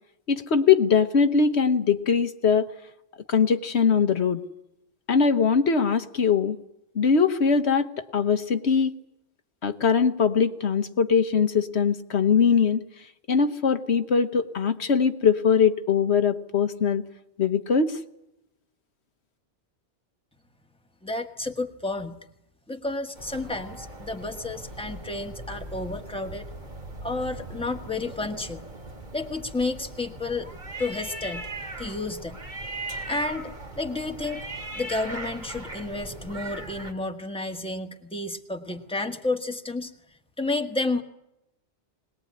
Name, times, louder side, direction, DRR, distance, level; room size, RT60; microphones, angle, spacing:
voice 1, 0.3-2.7 3.3-4.4 5.1-6.6 6.9-8.9 9.6-12.8 13.3-17.0 17.4-18.0, left 6 dB, 70° left, 9 dB, 1.3 m, -21 dB
voice 2, 21.0-22.2 22.7-26.4 27.0-28.6 29.1-30.5 30.8-31.5 31.8-32.4 33.1-34.5 34.7-39.9 40.4-41.0, left 2 dB, 5° left, 4 dB, 1.5 m, -31 dB
sound 1, 23.1-36.9, right 2 dB, 45° right, 2.4 m, -39 dB
21.5 x 20.0 x 9.6 m, 0.86 s
omnidirectional pair, 1.2 m